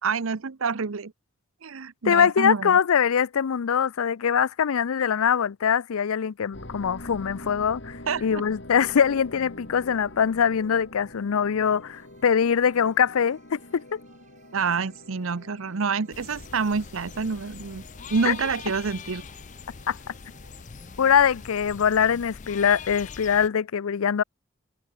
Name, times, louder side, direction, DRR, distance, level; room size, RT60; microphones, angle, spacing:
voice 1, 0.0-1.1 1.6-2.8 8.1-8.4 14.5-17.8 18.1-19.2, right 5 dB, 75° right, 0.7 m, -27 dB
voice 2, 2.0-14.0 18.2-18.3 19.9-20.0 21.0-24.2, left 7 dB, 85° left, 0.5 m, -23 dB
sound 1, 6.5-20.6, left 1 dB, 55° left, 4.0 m, -46 dB
sound 2, 11.6-21.8, right 4 dB, 35° right, 4.0 m, -60 dB
sound 3, 16.1-23.5, left 6 dB, 35° left, 0.5 m, -42 dB
head